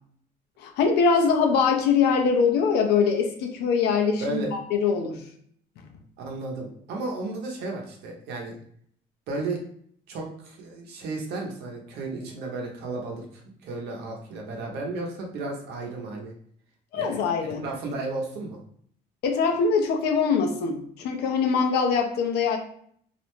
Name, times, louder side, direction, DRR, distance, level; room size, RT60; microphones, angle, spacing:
voice 1, 0.6-5.2 16.9-17.6 19.2-22.6, left 5 dB, 75° left, 4 dB, 0.5 m, -23 dB
voice 2, 4.2-4.5 6.2-8.6 9.3-9.6 10.1-16.3 16.9-18.6, right 3 dB, 80° right, 1 dB, 0.7 m, -34 dB
2.5 x 2.1 x 3.0 m, 0.63 s
cardioid pair, 110°, 17 cm